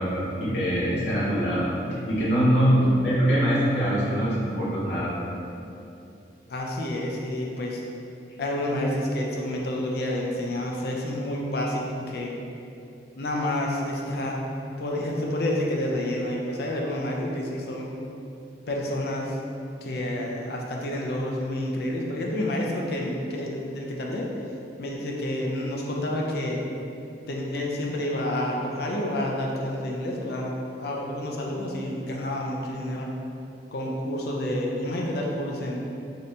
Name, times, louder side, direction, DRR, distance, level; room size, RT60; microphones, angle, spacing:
voice 1, 0.0-5.1, equal, 80° left, -9 dB, 0.9 m, -23 dB
voice 2, 6.5-7.8 8.4-12.3 13.2-14.4 14.8-17.9 18.7-19.4 19.8-24.3 24.8-26.6 27.3-30.5 30.8-33.1 33.7-35.8, left 1 dB, 60° left, -1 dB, 0.4 m, -29 dB
2.7 x 2.6 x 3.3 m, 2.7 s
head